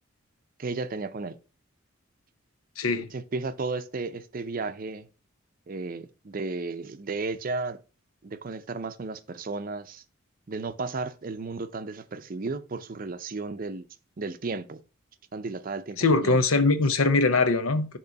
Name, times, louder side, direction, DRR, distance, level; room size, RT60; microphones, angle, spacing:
voice 1, 0.6-1.4 3.1-5.1 5.7-7.8 8.2-10.0 10.5-13.8 14.2-14.8 15.3-16.4, right 3 dB, 45° right, 0.5 m, -34 dB
voice 2, 2.8-3.1 16.0-18.0, left 3 dB, 90° left, 0.8 m, -22 dB
6.6 x 3.1 x 5.7 m
head